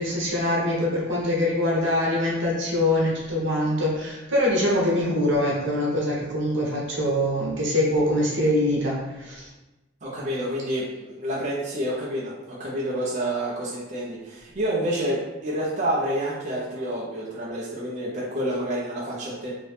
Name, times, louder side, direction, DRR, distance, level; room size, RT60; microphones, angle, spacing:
voice 1, 0.0-9.5, left 1 dB, 75° right, -4 dB, 1.1 m, -24 dB
voice 2, 10.0-19.5, right 1 dB, 40° right, -7 dB, 0.6 m, -28 dB
3.0 x 2.7 x 3.3 m, 1.1 s
head